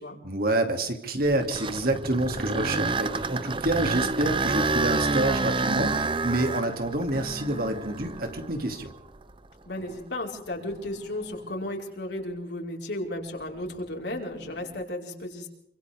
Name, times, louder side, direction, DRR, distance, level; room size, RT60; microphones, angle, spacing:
voice 1, 0.2-8.9, right 1 dB, 55° right, 5 dB, 2.8 m, -27 dB
sound 1, 1.2-9.3 9.9-10.0 10.7-10.9 14.4-14.7, right 3 dB, 30° right, 0.7 m, -29 dB
voice 2, 9.7-15.5, left 1 dB, 70° left, 0 dB, 5.0 m, -34 dB
28.0 x 25.0 x 3.7 m, 0.77 s
head